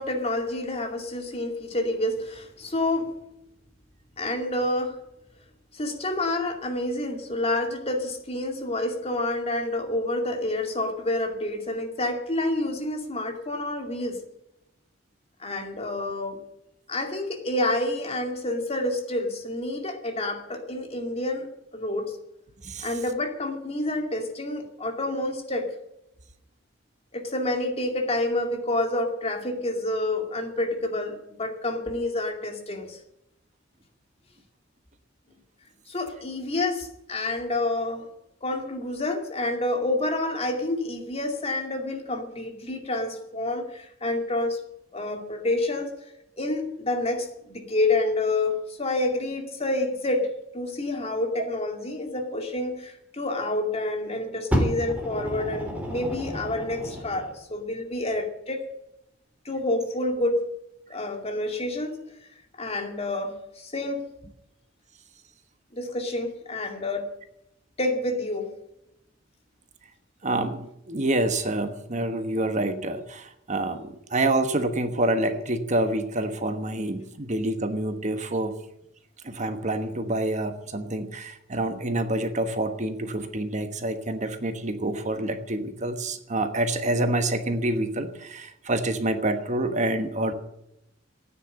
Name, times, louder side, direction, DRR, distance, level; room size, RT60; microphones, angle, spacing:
voice 1, 0.0-3.1 4.2-5.0 5.7-14.2 15.4-16.4 16.9-22.2 22.8-25.7 27.1-33.0 35.9-38.1 38.4-44.6 44.9-45.9 46.4-50.3 50.5-58.6 59.4-60.4 60.9-62.0 62.6-64.0 65.7-67.1 67.8-68.6, left 2 dB, 35° left, 4 dB, 2.4 m, -28 dB
Fire, 54.5-57.3 58.1-58.2, equal, 10° right, 3.6 m, -29 dB
voice 2, 70.2-78.5 79.2-90.3, right 1 dB, 40° right, 8 dB, 1.2 m, -27 dB
14.0 x 9.7 x 8.7 m, 0.82 s
head